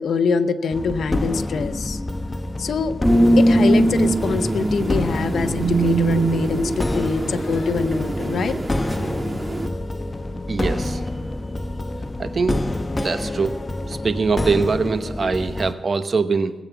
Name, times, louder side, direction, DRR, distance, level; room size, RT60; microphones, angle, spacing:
voice 1, 0.0-2.0 2.6-2.9 3.4-8.6, left 5 dB, 85° left, 10 dB, 0.7 m, -24 dB
sound 1, 0.7-15.7, left 1 dB, 25° left, 0.9 m, -28 dB
sound 2, 3.0-9.7, right 1 dB, 25° right, 1.8 m, -21 dB
voice 2, 10.5-11.0 12.2-12.6 13.0-13.6 13.9-16.5, right 4 dB, 55° right, 10 dB, 1.0 m, -22 dB
19.5 x 8.2 x 7.0 m, 1.1 s
cardioid pair, 80°, 0 cm